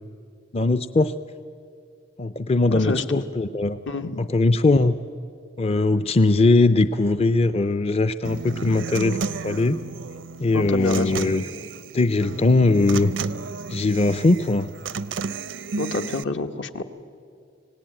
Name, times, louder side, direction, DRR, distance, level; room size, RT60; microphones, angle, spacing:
voice 1, 0.5-1.1 2.2-3.8 4.2-4.9 5.6-9.2 9.4-9.8 10.4-11.4 11.9-13.1 13.7-14.7, left 2 dB, 35° left, 12 dB, 0.5 m, -20 dB
voice 2, 2.7-3.2 3.9-4.3 10.5-11.4 15.8-16.8, left 2 dB, 70° left, 7 dB, 1.2 m, -28 dB
Human voice / Acoustic guitar, 8.2-16.2, right 4 dB, 85° right, 0.6 m, -33 dB
26.0 x 18.0 x 9.0 m, 2.5 s
head